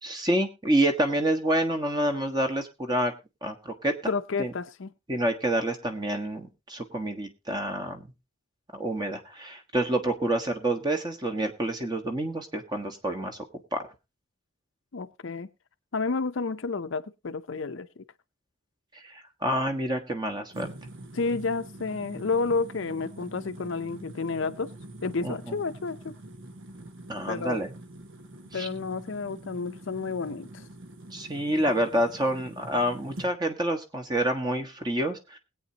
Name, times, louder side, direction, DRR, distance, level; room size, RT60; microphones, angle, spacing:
voice 1, 0.0-3.1 3.4-3.9 4.4-4.5 5.1-8.1 8.7-13.4 13.7-13.8 19.4-20.7 25.2-25.6 27.1-27.7 28.5-28.7 31.1-35.4, right 1 dB, 20° right, 1.4 m, -28 dB
voice 2, 4.1-4.9 14.9-15.5 15.9-17.9 21.1-24.7 25.0-26.1 27.3-27.6 28.5-30.6, left 4 dB, 60° left, 0.6 m, -30 dB
sound 1, 20.5-33.3, right 1 dB, 70° right, 1.3 m, -45 dB
20.5 x 8.7 x 2.8 m
head